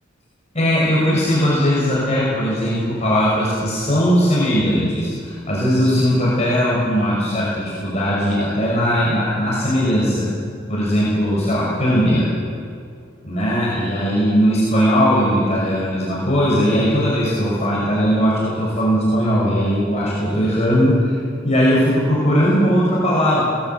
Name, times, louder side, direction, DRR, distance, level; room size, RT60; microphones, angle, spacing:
voice 1, 0.5-10.2 10.7-12.3 13.2-21.2 21.4-23.4, equal, 35° left, -6 dB, 5.7 m, -18 dB
21.0 x 16.0 x 7.9 m, 2.3 s
head